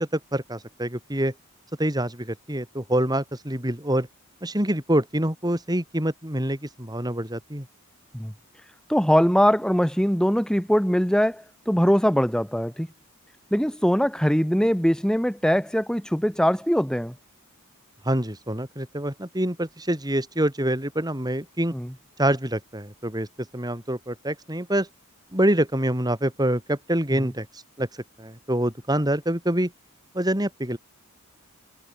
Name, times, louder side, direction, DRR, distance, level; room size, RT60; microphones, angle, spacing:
voice 1, 0.0-1.3 1.8-4.1 4.4-7.7 18.0-21.7 22.2-23.3 23.5-24.9 25.3-27.5 27.8-27.9 28.2-29.7 30.1-30.8, right 1 dB, 20° right, 4.0 m, -26 dB
voice 2, 8.9-12.9 13.5-17.1 21.7-21.9, equal, 5° left, 3.1 m, -22 dB
head